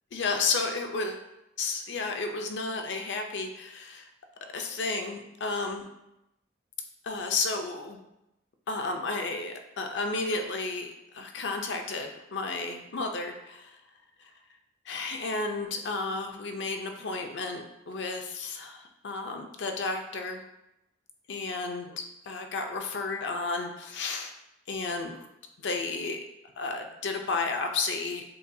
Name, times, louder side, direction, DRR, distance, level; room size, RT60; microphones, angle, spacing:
voice 1, 0.1-1.2 1.6-4.1 4.5-5.9 7.0-8.0 8.7-13.8 14.2-14.3 14.9-20.4 21.3-24.3 24.7-25.3 25.6-26.2 26.6-28.2, left 3 dB, 80° left, 4 dB, 0.5 m, -32 dB
6.6 x 2.3 x 2.6 m, 0.90 s
head